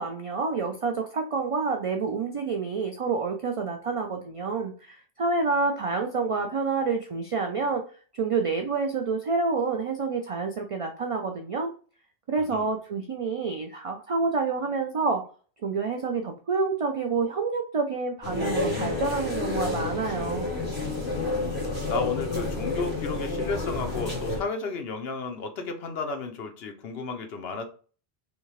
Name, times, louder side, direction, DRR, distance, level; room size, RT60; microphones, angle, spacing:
voice 1, 0.0-7.8 8.1-11.7 12.3-15.2 15.6-20.5, right 4 dB, 60° right, 3 dB, 0.3 m, -28 dB
voice 2, 12.4-12.7 21.2-27.6, left 4 dB, 75° left, 5 dB, 0.9 m, -33 dB
sound 1, 18.2-24.4, left 2 dB, 10° right, 1.6 m, -29 dB
3.4 x 2.8 x 2.9 m, 0.40 s
omnidirectional pair, 1.1 m